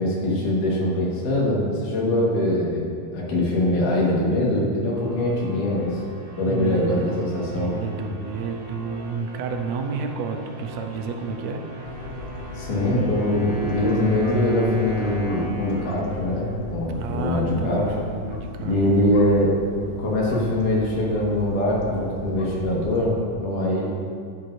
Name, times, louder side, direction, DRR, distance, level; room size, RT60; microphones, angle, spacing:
voice 1, 0.0-6.0 6.4-7.7 12.5-17.8 18.6-19.5 20.0-23.9, left 1 dB, 85° left, -4 dB, 3.2 m, -23 dB
sound 1, 3.3-16.4, equal, 55° right, 2.4 m, -42 dB
voice 2, 6.5-11.7 16.9-19.0, right 5 dB, 80° right, 4 dB, 1.7 m, -31 dB
Wind instrument woodwind instrument, 11.7-17.7, right 1 dB, 15° left, 1.9 m, -39 dB
sound 2, 11.8-23.1, left 2 dB, 65° left, 1.8 m, -37 dB
12.0 x 9.4 x 2.6 m, 2.2 s
omnidirectional pair, 3.6 m